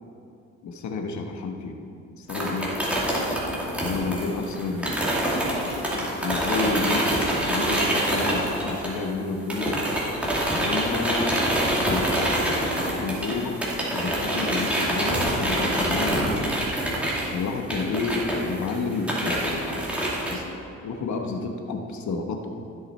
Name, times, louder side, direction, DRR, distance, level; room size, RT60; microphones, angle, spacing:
voice 1, 0.6-1.8 2.2-2.7 3.8-5.0 5.7-9.9 10.5-11.6 11.8-13.6 13.9-16.4 17.3-19.9 20.3-22.5, left 4 dB, 70° left, 3 dB, 1.2 m, -30 dB
sound 1, 2.3-9.2 9.5-20.3, right 1 dB, 5° right, 2.5 m, -26 dB
15.0 x 6.3 x 4.4 m, 2.6 s
cardioid pair, 90°, 30 cm